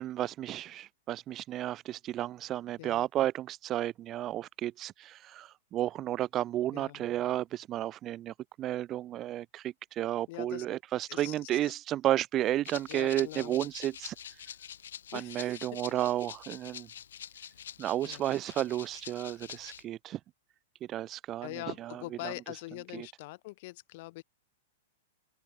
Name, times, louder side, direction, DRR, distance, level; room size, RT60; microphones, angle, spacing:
voice 1, 0.0-14.2 15.1-16.9 17.8-20.2 20.8-22.3 22.9-23.1, right 13 dB, 30° right, 0.4 m, -32 dB
voice 2, 6.7-7.0 10.3-10.6 11.1-11.7 12.9-13.6 15.1-15.8 18.1-18.3 21.4-24.2, left 21 dB, 55° left, 3.2 m, -43 dB
Rattle (instrument), 12.6-19.8, left 9 dB, 80° left, 3.6 m, -46 dB
hypercardioid pair, 125°, 0 cm